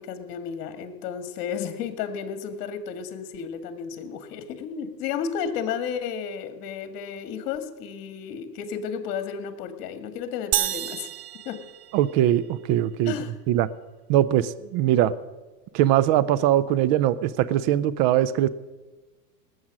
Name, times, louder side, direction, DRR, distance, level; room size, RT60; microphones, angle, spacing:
voice 1, 0.0-11.1 11.5-11.6 13.1-13.3, left 7 dB, 45° left, 9 dB, 2.0 m, -33 dB
sound 1, 10.5-12.5, right 14 dB, 75° right, 0.8 m, -29 dB
voice 2, 11.9-13.1 13.5-13.7 14.1-15.1 15.7-18.5, right 12 dB, 45° right, 17 dB, 0.7 m, -21 dB
19.0 x 8.0 x 6.2 m, 1.2 s
hypercardioid pair, 115°, 49 cm